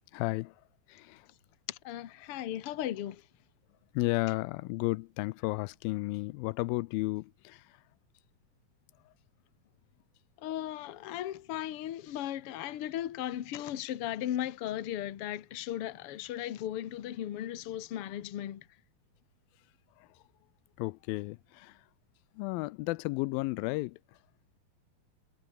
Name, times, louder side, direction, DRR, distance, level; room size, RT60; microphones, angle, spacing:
voice 1, 0.1-0.5 0.9-1.2 3.9-7.6 20.8-21.7 22.4-24.0, left 22 dB, 90° left, 2.4 m, -33 dB
voice 2, 1.7-3.2 10.4-18.6, left 12 dB, 55° left, 1.7 m, -36 dB
omnidirectional pair, 4.1 m